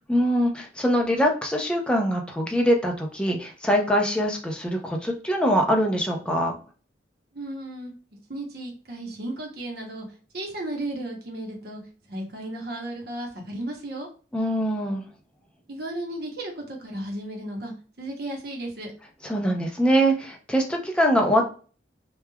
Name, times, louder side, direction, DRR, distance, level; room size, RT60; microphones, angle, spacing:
voice 1, 0.1-6.5 14.3-15.0 19.2-21.5, equal, 5° left, 1 dB, 0.5 m, -23 dB
voice 2, 7.3-7.9 8.3-10.1 10.3-11.8 12.1-14.1 15.7-18.9, right 1 dB, 65° right, 1 dB, 0.8 m, -34 dB
3.0 x 2.3 x 2.2 m, 0.38 s
head